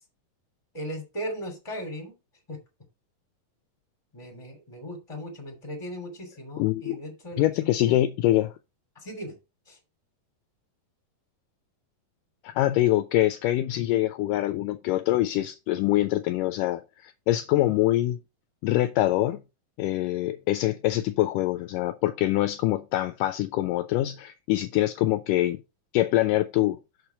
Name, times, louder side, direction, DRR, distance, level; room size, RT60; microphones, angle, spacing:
voice 1, 0.7-2.2 2.5-2.6 4.1-8.0 8.9-9.4 9.7-9.8, equal, 10° left, 2.2 m, -37 dB
voice 2, 6.6-7.0 7.4-8.5 12.4-18.2 18.6-19.4 19.8-25.6 25.9-26.8, left 15 dB, 80° left, 2.0 m, -24 dB
6.7 x 4.6 x 5.7 m
omnidirectional pair, 4.1 m